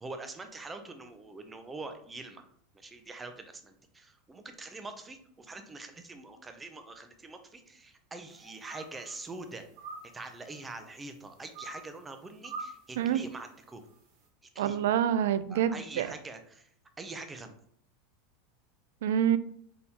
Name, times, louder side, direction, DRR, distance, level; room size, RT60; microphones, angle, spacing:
voice 1, 0.0-2.4 2.7-9.7 10.1-13.8 14.5-14.8 15.5-16.7 17.0-17.5, right 3 dB, 10° right, 7 dB, 0.4 m, -44 dB
sound 1, 8.3-9.2 9.6-10.6 11.5-12.0 12.4-12.9 13.3-13.6, right 3 dB, 55° right, 1.2 m, -44 dB
voice 2, 14.6-16.1 19.0-19.4, right 9 dB, 85° right, 14 dB, 0.3 m, -27 dB
4.2 x 3.5 x 2.8 m, 0.64 s
supercardioid pair, 165°, 0 cm